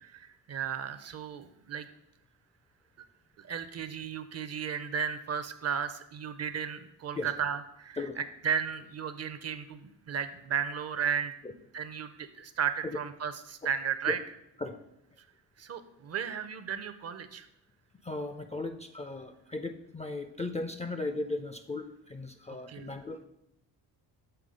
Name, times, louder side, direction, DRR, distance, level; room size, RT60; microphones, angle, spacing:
voice 1, 0.0-1.9 3.4-11.3 11.7-14.2 15.6-17.5 22.7-22.9, right 7 dB, 40° right, 11 dB, 0.5 m, -34 dB
voice 2, 18.0-23.2, left 2 dB, 20° left, 7 dB, 0.3 m, -36 dB
6.9 x 3.6 x 4.9 m, 0.82 s
cardioid pair, 100°, 40 cm